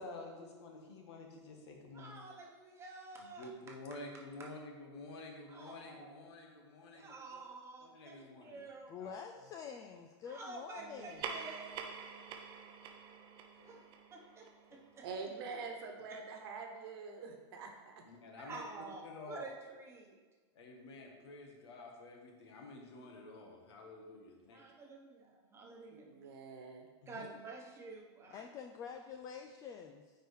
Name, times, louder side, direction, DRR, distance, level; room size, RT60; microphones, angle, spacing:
voice 1, 0.0-2.2 3.2-7.4 7.8-8.6 9.0-9.5 13.5-13.8 14.7-14.8 18.0-19.5 20.5-24.7 27.0-27.3, left 2 dB, 70° left, 1 dB, 1.5 m, -50 dB
voice 2, 1.9-3.5 5.5-6.3 6.9-8.9 10.3-11.7 13.6-13.8 14.1-15.0 16.1-16.2 18.4-20.1 24.5-26.1 27.1-28.5, right 3 dB, 20° right, -1 dB, 1.2 m, -50 dB
voice 3, 8.9-11.3 28.3-30.1, left 7 dB, 25° left, 4 dB, 0.3 m, -47 dB
Piano, 10.8-16.5, right 11 dB, ahead, 2.2 m, -63 dB
sound 1, 11.0-15.8, right 6 dB, 35° right, 0.6 m, -47 dB
voice 4, 15.0-17.9 25.9-26.9, right 4 dB, 60° right, 3 dB, 1.2 m, -45 dB
8.8 x 4.7 x 3.4 m, 1.3 s
supercardioid pair, 140°, 15 cm